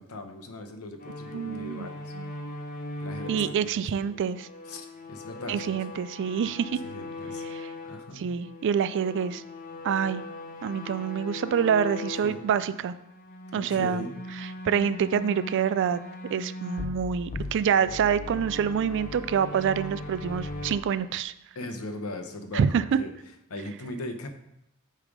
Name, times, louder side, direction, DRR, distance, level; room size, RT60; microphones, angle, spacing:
voice 1, 0.0-2.1 3.0-3.7 4.7-5.7 6.4-7.4 7.8-8.3 12.2-12.4 13.5-14.1 21.5-23.1 23.5-24.3, left 2 dB, 75° left, 5 dB, 0.8 m, -39 dB
sound 1, 1.0-8.1 8.4-12.5 13.1-20.8, left 2 dB, 40° left, 0.7 m, -39 dB
voice 2, 1.3-1.9 2.2-2.3 3.3-4.5 5.5-6.8 8.2-9.4 9.8-10.2 10.6-12.9 13.5-14.1 14.6-16.0 16.3-21.3 22.5-22.8, right 7 dB, 55° right, 13 dB, 0.3 m, -26 dB
8.5 x 3.3 x 4.9 m, 0.84 s
head